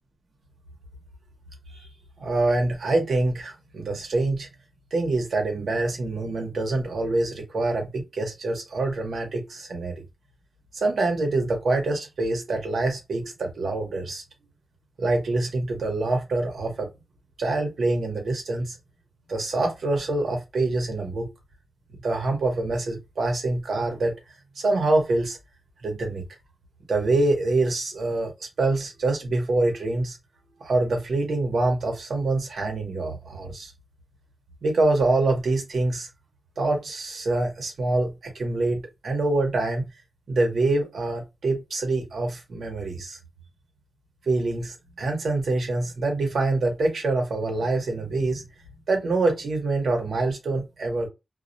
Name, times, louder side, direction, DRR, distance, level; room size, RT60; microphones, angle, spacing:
voice 1, 2.2-4.5 4.9-9.9 10.7-14.2 15.0-16.9 17.4-18.8 19.3-21.3 22.0-24.1 24.6-25.4 25.8-26.2 26.9-28.3 28.6-30.2 30.6-33.7 34.6-36.1 36.6-39.8 40.3-43.2 44.3-48.4 48.9-51.1, right 2 dB, 75° right, 0.9 m, -25 dB
2.3 x 2.1 x 2.6 m
wide cardioid pair, 140°, 0 cm